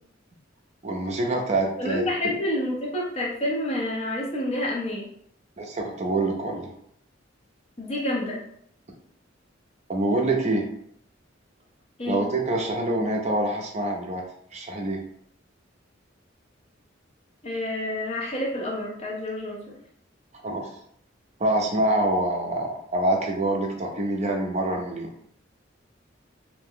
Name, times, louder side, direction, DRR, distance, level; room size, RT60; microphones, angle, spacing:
voice 1, 0.8-2.0 5.6-6.7 9.9-10.7 12.1-14.2 14.5-15.0 20.4-20.7 21.4-25.1, right 2 dB, 35° right, 1 dB, 0.5 m, -25 dB
voice 2, 1.8-5.1 7.8-8.4 12.0-12.2 17.4-19.7, left 1 dB, 35° left, -3 dB, 0.8 m, -28 dB
2.6 x 2.1 x 3.6 m, 0.68 s
head